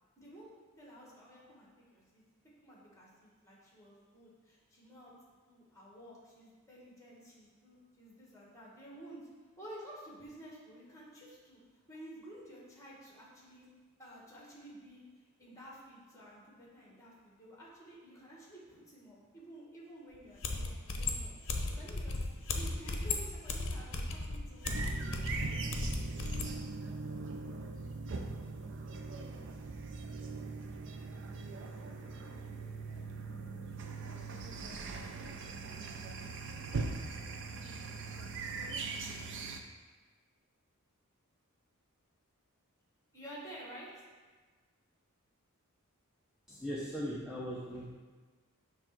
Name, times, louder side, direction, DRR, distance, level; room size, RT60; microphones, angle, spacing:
voice 1, 0.2-0.5 0.8-2.2 2.6-5.1 5.5-9.2 9.6-11.6 11.9-13.7 14.0-15.0 15.4-21.3 21.7-24.8 43.1-44.0, right 1 dB, 15° left, -4 dB, 1.7 m, -52 dB
sound 1, 20.1-20.2 20.4-26.5, left 3 dB, 60° left, 0.7 m, -36 dB
sound 2, 24.6-39.6, right 4 dB, 55° right, 0.5 m, -41 dB
voice 2, 46.5-47.9, equal, 5° right, -7 dB, 0.7 m, -39 dB
6.9 x 3.2 x 5.9 m, 1.4 s
head